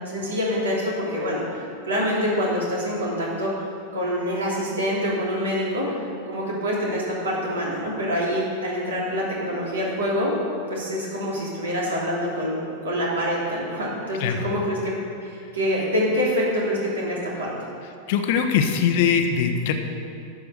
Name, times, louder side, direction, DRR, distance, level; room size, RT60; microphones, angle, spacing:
voice 1, 0.0-3.5 3.9-6.0 6.3-10.3 10.7-12.6 12.8-14.9 15.2-17.5, equal, 65° right, -5 dB, 3.1 m, -26 dB
voice 2, 18.1-19.7, left 7 dB, 50° left, 5 dB, 0.9 m, -21 dB
11.5 x 5.0 x 7.9 m, 2.4 s
figure-of-eight pair, 90°, 0 cm